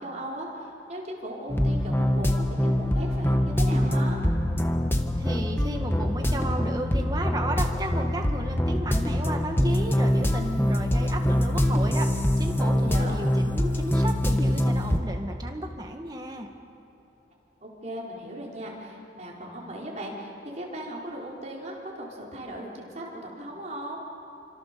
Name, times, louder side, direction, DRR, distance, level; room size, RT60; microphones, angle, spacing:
voice 1, 0.0-4.2 12.7-13.2 17.6-24.0, right 1 dB, 40° right, -3 dB, 4.8 m, -37 dB
sound 1, 1.5-15.0, left 1 dB, 10° left, 1.3 m, -24 dB
voice 2, 5.2-16.5, right 1 dB, 20° right, 3 dB, 1.9 m, -34 dB
27.5 x 26.0 x 7.0 m, 2.9 s
head